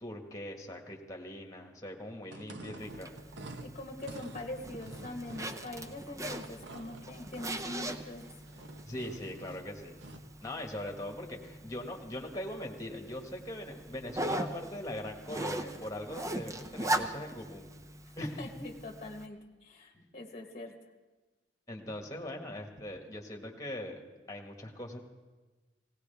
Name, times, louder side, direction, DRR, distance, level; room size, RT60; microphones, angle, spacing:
voice 1, 0.0-3.1 8.9-10.0 10.4-17.7 18.2-18.5 19.9-20.1 21.7-24.0 24.3-25.0, left 1 dB, 20° left, 2 dB, 1.7 m, -41 dB
sound 1, 2.2-10.3, right 2 dB, 80° right, 1.0 m, -49 dB
Zipper (clothing), 2.8-19.3, right 1 dB, 15° right, 0.6 m, -40 dB
voice 2, 3.6-8.3 18.2-20.7, left 1 dB, 35° left, 3 dB, 1.2 m, -43 dB
18.0 x 17.5 x 3.5 m, 1.3 s
head